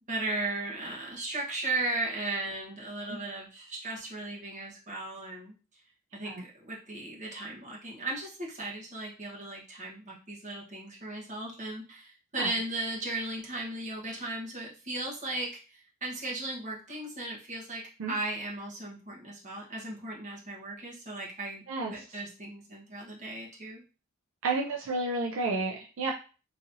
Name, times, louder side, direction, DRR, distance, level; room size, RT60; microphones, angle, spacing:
voice 1, 0.1-5.6 6.1-21.6 21.9-23.8, right 2 dB, 35° right, -3 dB, 1.2 m, -36 dB
voice 2, 24.4-26.1, right 3 dB, 65° right, 0 dB, 0.5 m, -31 dB
4.0 x 2.9 x 2.6 m, 0.35 s
head